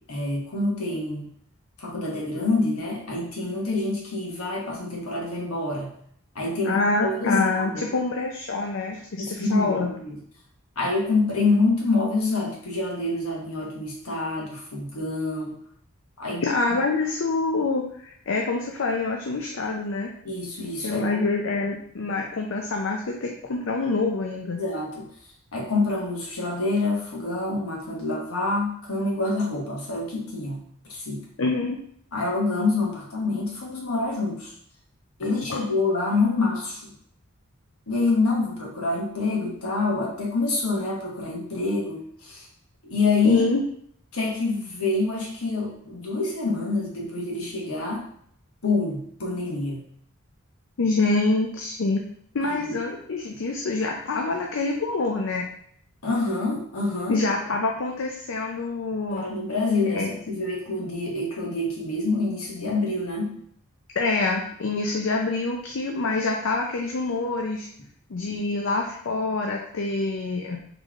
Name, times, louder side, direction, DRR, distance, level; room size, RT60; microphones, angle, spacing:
voice 1, 0.1-1.3 1.8-5.9 6.3-7.9 9.2-10.2 10.8-15.6 16.2-16.8 20.2-21.2 24.6-25.1 25.5-30.6 30.9-31.2 32.1-34.5 35.2-36.9 37.9-42.5 42.8-43.4 44.1-48.0 48.6-49.9 52.4-52.8 56.0-57.2 59.1-63.3, left 3 dB, 85° left, -2 dB, 1.3 m, -26 dB
voice 2, 6.6-9.9 16.4-20.1 20.8-24.6 31.4-31.8 35.5-35.6 43.2-43.6 50.8-52.0 52.3-55.5 57.1-59.2 59.9-60.1 64.0-67.7 68.1-70.6, left 3 dB, 65° left, 1 dB, 0.5 m, -26 dB
4.0 x 3.2 x 3.6 m, 0.65 s
head